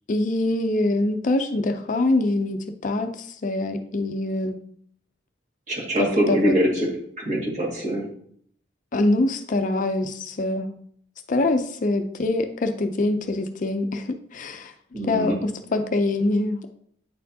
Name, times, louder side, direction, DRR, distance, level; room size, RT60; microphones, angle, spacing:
voice 1, 0.1-4.6 6.0-6.5 8.9-10.7 11.3-14.7 15.0-16.7, left 2 dB, 40° left, 7 dB, 0.4 m, -24 dB
voice 2, 5.7-6.9 7.2-8.0 14.9-15.4, equal, 40° right, -3 dB, 1.9 m, -23 dB
9.0 x 4.4 x 2.7 m, 0.63 s
head